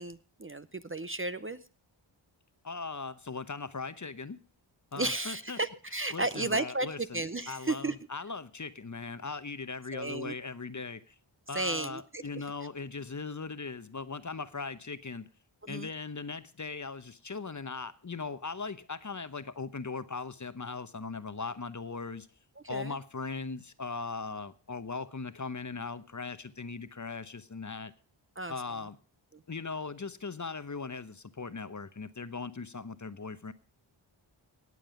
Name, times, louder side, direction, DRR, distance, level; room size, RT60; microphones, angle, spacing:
voice 1, 0.0-1.6 5.0-8.0 9.9-10.3 11.5-12.4 15.6-15.9 22.6-23.0 28.4-28.5 29.3-29.4, right 2 dB, 25° right, 13 dB, 0.7 m, -34 dB
voice 2, 2.6-4.4 4.9-5.6 6.1-11.1 11.5-15.3 15.7-22.3 22.7-27.9 28.5-29.0 29.5-33.5, left 4 dB, 35° left, 13 dB, 0.9 m, -39 dB
18.0 x 7.7 x 5.1 m, 0.39 s
wide cardioid pair, 55°, 49 cm